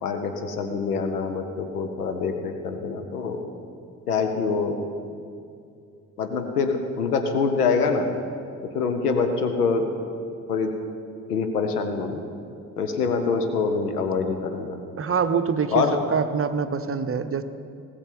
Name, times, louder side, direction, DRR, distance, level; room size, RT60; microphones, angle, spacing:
voice 1, 0.0-3.5 4.1-4.8 6.2-8.1 8.6-9.8 10.5-10.7 11.3-12.2 12.8-14.8 15.7-15.9, left 5 dB, 85° left, 6 dB, 0.9 m, -25 dB
voice 2, 15.0-15.8 16.1-17.4, right 6 dB, 30° right, 10 dB, 0.8 m, -24 dB
19.0 x 7.2 x 5.4 m, 2.5 s
figure-of-eight pair, 45°, 45 cm